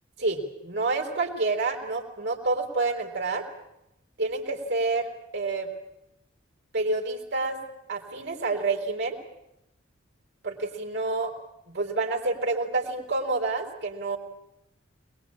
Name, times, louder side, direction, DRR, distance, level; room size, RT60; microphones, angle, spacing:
voice 1, 0.2-3.5 4.2-5.7 6.7-7.6 7.9-9.2 10.4-11.3 11.7-14.2, right 3 dB, 55° right, 1 dB, 4.4 m, -28 dB
22.0 x 21.5 x 8.8 m, 0.86 s
head